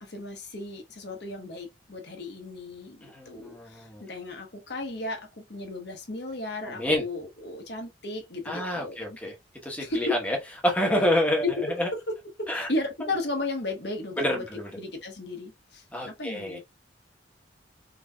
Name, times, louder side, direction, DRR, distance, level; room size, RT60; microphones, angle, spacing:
voice 1, 0.0-9.2 9.8-10.2 11.9-12.0 12.4-14.4 14.8-16.6, left 2 dB, 60° left, 1.1 m, -35 dB
voice 2, 3.0-4.0 6.7-7.0 8.4-9.3 9.6-10.4 10.6-11.9 12.5-12.7 14.2-14.7 15.9-16.6, left 1 dB, 10° left, 1.1 m, -28 dB
3.8 x 3.1 x 2.3 m
head